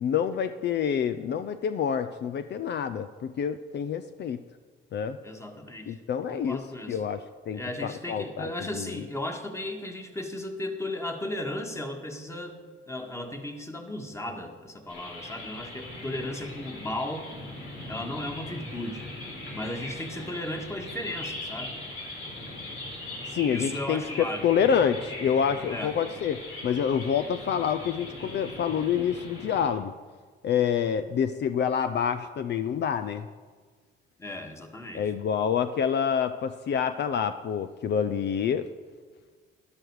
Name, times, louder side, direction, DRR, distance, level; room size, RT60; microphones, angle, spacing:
voice 1, 0.0-4.4 4.9-5.2 5.9-6.6 6.9-9.0 23.3-29.9 30.4-33.3 34.9-38.7, left 8 dB, 60° left, 10 dB, 0.6 m, -27 dB
voice 2, 5.2-6.0 6.3-7.0 7.5-12.6 12.9-17.3 17.9-19.1 19.5-21.8 23.5-24.5 25.7-25.9 34.2-35.0, left 1 dB, 15° left, 4 dB, 1.8 m, -35 dB
sound 1, 14.9-29.7, left 2 dB, 80° left, 4.4 m, -40 dB
13.0 x 11.5 x 4.8 m, 1.5 s
cardioid pair, 90°, 20 cm